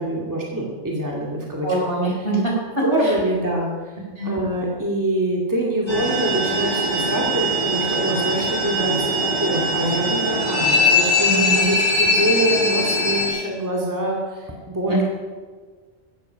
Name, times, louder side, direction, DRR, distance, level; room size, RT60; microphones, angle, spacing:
voice 1, 0.0-1.7 2.8-4.0 4.2-15.0, right 1 dB, 15° right, -3 dB, 2.4 m, -24 dB
voice 2, 1.6-2.8 4.2-4.3 11.2-11.7 14.9-15.0, right 2 dB, 60° right, -2 dB, 5.4 m, -23 dB
sound 1, 5.9-13.3, left 2 dB, 45° left, 6.5 m, -21 dB
16.5 x 14.5 x 5.8 m, 1.5 s
omnidirectional pair, 1.1 m